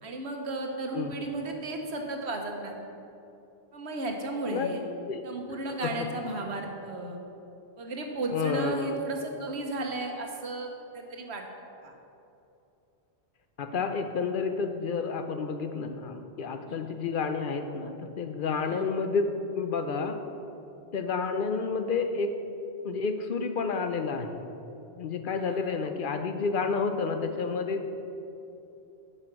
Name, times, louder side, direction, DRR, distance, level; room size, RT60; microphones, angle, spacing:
voice 1, 0.0-2.7 3.7-4.8 5.2-7.2 7.8-11.4 11.8-11.9 16.7-16.8 18.6-18.8 25.3-25.8, right 2 dB, 75° right, 2 dB, 1.3 m, -34 dB
voice 2, 8.3-9.0 13.6-20.2 20.9-22.3 22.8-24.4 25.0-27.9, left 4 dB, 55° left, 7 dB, 0.7 m, -30 dB
9.3 x 5.6 x 6.0 m, 2.8 s
omnidirectional pair, 1.1 m